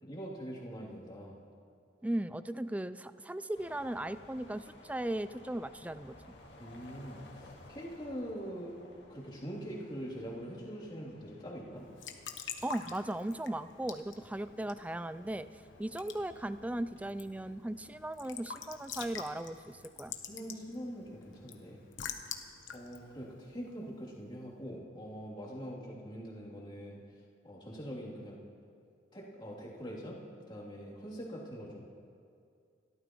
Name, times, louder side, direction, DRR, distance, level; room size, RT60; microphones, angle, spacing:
voice 1, 0.0-1.4 6.6-8.7 9.1-11.8 20.2-21.9 22.7-27.0 27.4-28.4 29.1-30.2 30.5-31.8, equal, 25° left, -6 dB, 3.2 m, -43 dB
voice 2, 2.0-6.1 12.6-15.5 15.8-20.1, right 1 dB, 10° right, 13 dB, 0.3 m, -37 dB
sound 1, 3.5-23.1, left 1 dB, 65° left, 2.1 m, -58 dB
Raindrop / Drip / Trickle dribble, 11.8-24.2, left 7 dB, 90° left, 1.1 m, -47 dB
29.5 x 13.5 x 3.1 m, 2.4 s
head